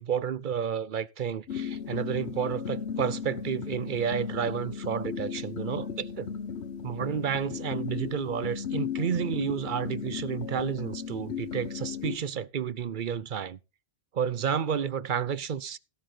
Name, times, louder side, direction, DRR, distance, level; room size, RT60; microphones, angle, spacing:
voice 1, 0.0-6.3 6.8-13.6 14.1-15.8, right 8 dB, 55° right, 0.8 m, -31 dB
sound 1, 1.5-12.2, left 7 dB, 80° left, 1.3 m, -36 dB
17.0 x 7.7 x 4.0 m
omnidirectional pair, 1.1 m